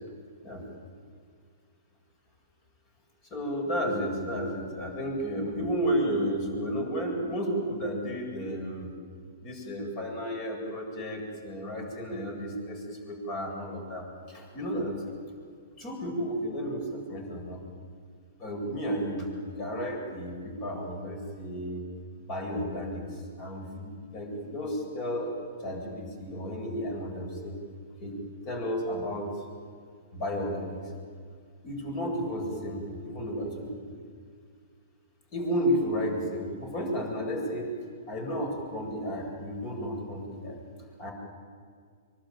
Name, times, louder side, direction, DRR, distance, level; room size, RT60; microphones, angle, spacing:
voice 1, 3.3-8.9 9.4-15.0 15.8-17.6 18.4-21.8 22.2-25.3 25.6-27.6 28.0-29.3 30.1-30.8 31.6-33.9 35.3-37.8 38.1-40.6 41.0-41.1, equal, 35° left, 2 dB, 8.0 m, -32 dB
24.0 x 24.0 x 9.3 m, 2.1 s
figure-of-eight pair, 115°, 0 cm